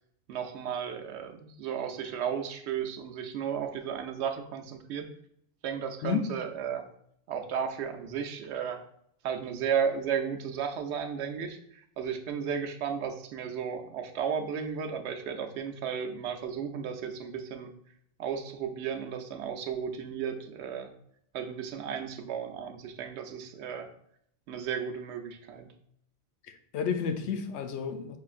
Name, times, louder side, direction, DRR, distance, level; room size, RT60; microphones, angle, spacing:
voice 1, 0.3-5.1 5.6-6.8 7.3-8.8 9.2-17.7 18.2-20.9 21.3-23.9 24.5-25.7, right 7 dB, 80° right, 0.9 m, -34 dB
voice 2, 26.5-28.2, left 6 dB, 85° left, 0.9 m, -31 dB
5.7 x 3.2 x 2.4 m
omnidirectional pair, 1.1 m